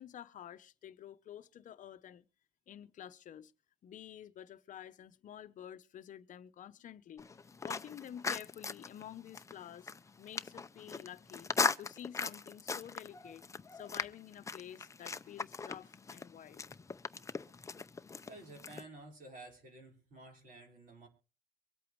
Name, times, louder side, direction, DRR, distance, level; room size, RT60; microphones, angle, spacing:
voice 1, 0.0-2.3 2.7-3.5 3.8-7.3 7.6-9.9 10.2-11.5 11.8-13.4 13.7-16.6, left 10 dB, 50° left, 0.8 m, -50 dB
sound 1, 7.2-18.8, left 4 dB, 20° left, 0.6 m, -39 dB
voice 2, 18.2-21.1, right 2 dB, 55° right, 4.6 m, -52 dB
24.0 x 8.4 x 3.2 m
cardioid pair, 110°, 17 cm